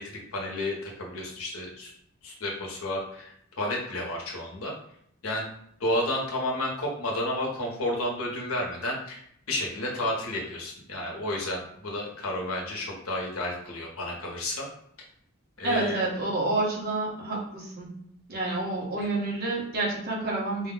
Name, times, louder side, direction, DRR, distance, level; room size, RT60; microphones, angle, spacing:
voice 1, 0.0-1.9 2.2-4.7 5.2-5.4 5.8-9.2 9.5-14.7 15.6-16.0 19.0-19.1, left 1 dB, 80° left, -2 dB, 1.3 m, -31 dB
voice 2, 15.6-17.9 18.3-20.7, right 2 dB, 50° right, -4 dB, 1.7 m, -29 dB
5.0 x 2.4 x 3.9 m, 0.69 s
head